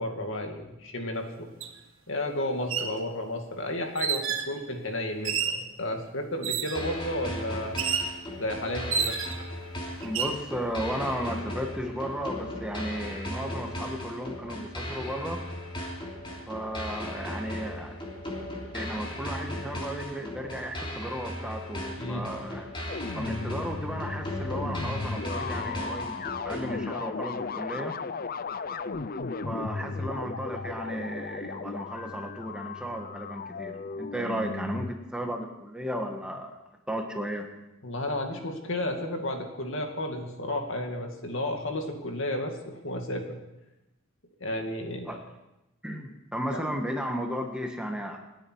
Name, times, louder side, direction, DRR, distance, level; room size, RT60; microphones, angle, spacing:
voice 1, 0.0-1.5 2.1-7.8 8.4-9.2 22.0-22.3 37.8-43.4 44.4-45.1 46.5-46.6, left 1 dB, 65° left, 3 dB, 2.3 m, -32 dB
sound 1, 1.6-1.7 2.5-3.0 4.0-4.5 5.2-5.7 6.4-6.9 7.8-8.1 8.9-9.5 10.0-10.4, right 7 dB, 65° right, 1.7 m, -29 dB
sound 2, 6.7-26.7, left 1 dB, 25° left, 3.3 m, -37 dB
voice 2, 10.0-15.4 16.5-18.0 18.7-22.7 23.1-28.0 29.4-36.5 36.9-37.5 45.0-45.2 45.8-48.2, equal, 5° right, 3 dB, 1.6 m, -34 dB
sound 3, 22.9-34.9, left 4 dB, 45° left, 0.6 m, -35 dB
28.0 x 10.5 x 4.7 m, 0.95 s
head